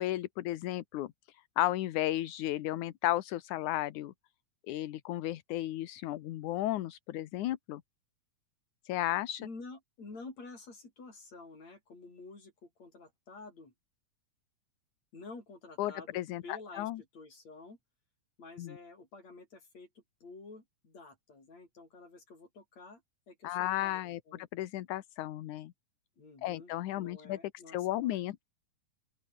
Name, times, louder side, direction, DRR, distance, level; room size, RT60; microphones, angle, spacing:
voice 1, 0.0-4.1 4.7-7.8 8.9-9.5 15.8-17.0 18.6-18.8 23.4-25.7 26.4-28.4, left 15 dB, 70° left, 2.4 m, -34 dB
voice 2, 9.4-13.7 15.1-17.8 18.4-23.0 23.3-24.4 26.2-28.3, left 3 dB, 55° left, 8.6 m, -50 dB
open air
omnidirectional pair, 3.7 m